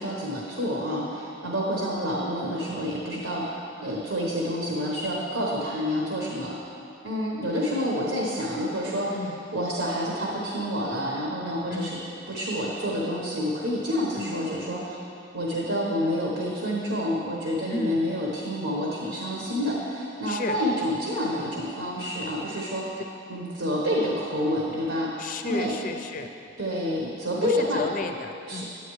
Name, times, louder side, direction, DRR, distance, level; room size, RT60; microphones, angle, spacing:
voice 1, 0.0-3.6 3.8-6.5 7.0-9.1 9.5-12.0 12.3-15.0 15.3-23.0 23.3-25.7 26.6-27.8 28.5-28.6, equal, 85° right, -4 dB, 1.2 m, -28 dB
voice 2, 9.1-9.4 11.7-12.0 14.2-14.4 17.7-18.0 20.3-20.6 25.2-26.3 27.4-28.6, left 2 dB, 45° left, 6 dB, 0.5 m, -32 dB
10.5 x 8.9 x 3.2 m, 2.8 s
head